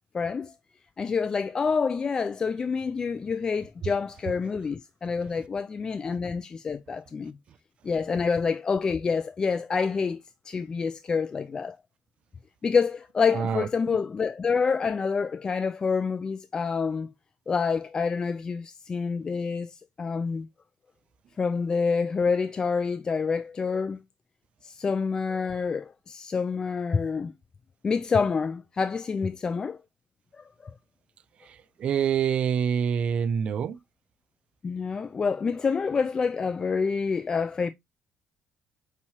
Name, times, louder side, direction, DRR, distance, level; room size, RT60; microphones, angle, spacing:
voice 1, 0.1-0.5 1.0-7.4 7.8-11.8 12.6-17.1 17.5-20.5 21.4-24.0 24.6-27.3 27.8-29.8 30.4-30.7 34.6-37.7, left 5 dB, 35° left, 0.3 m, -27 dB
voice 2, 13.3-13.7 31.5-33.8, right 7 dB, 55° right, 0.4 m, -26 dB
5.6 x 3.0 x 2.8 m
cardioid pair, 85°, 2 cm